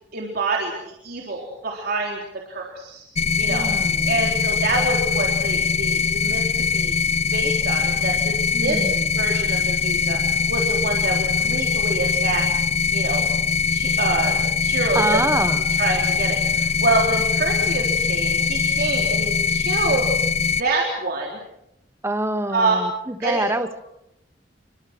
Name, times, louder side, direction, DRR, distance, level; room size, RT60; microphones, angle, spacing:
voice 1, 0.1-2.2 2.5-3.0 3.4-3.7 4.1-6.9 7.3-8.8 9.2-10.2 10.5-12.4 12.9-13.2 13.7-15.2 15.5-20.1 20.6-21.4 22.5-22.8 23.2-23.4, right 2 dB, 55° right, 0 dB, 3.8 m, -26 dB
sound 1, 3.2-20.6, left 5 dB, 35° left, 0.9 m, -22 dB
voice 2, 3.4-4.4 8.5-9.3 14.9-15.6 22.0-23.8, right 2 dB, 15° right, 10 dB, 1.4 m, -26 dB
28.0 x 24.5 x 6.2 m, 0.83 s
head